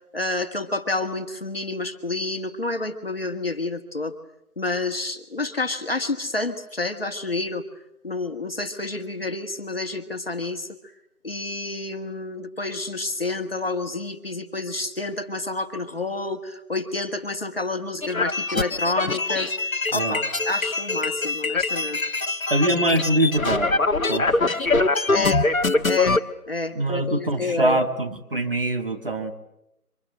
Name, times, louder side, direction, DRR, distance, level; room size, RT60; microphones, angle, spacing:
voice 1, 0.1-4.1 4.6-7.6 8.0-10.7 11.2-22.0 25.1-25.5 25.9-26.2 26.5-27.8, left 2 dB, 40° left, 6 dB, 1.8 m, -29 dB
sound 1, 18.0-26.2, left 3 dB, 60° left, 1.5 m, -23 dB
voice 2, 22.5-23.7 24.1-24.3 26.8-29.3, right 1 dB, 35° right, 5 dB, 2.4 m, -23 dB
28.0 x 25.5 x 8.2 m, 0.82 s
figure-of-eight pair, 175°, 46 cm